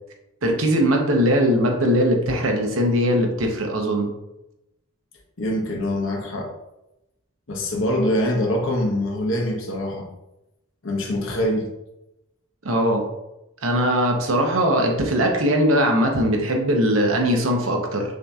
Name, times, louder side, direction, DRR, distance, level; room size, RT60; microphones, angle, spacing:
voice 1, 0.4-4.1 12.6-13.1 13.6-18.2, equal, 80° right, 2 dB, 0.8 m, -20 dB
voice 2, 5.4-6.5 7.5-10.1 10.8-11.7, left 1 dB, 70° left, 1 dB, 0.9 m, -24 dB
6.3 x 2.8 x 2.4 m, 0.91 s
head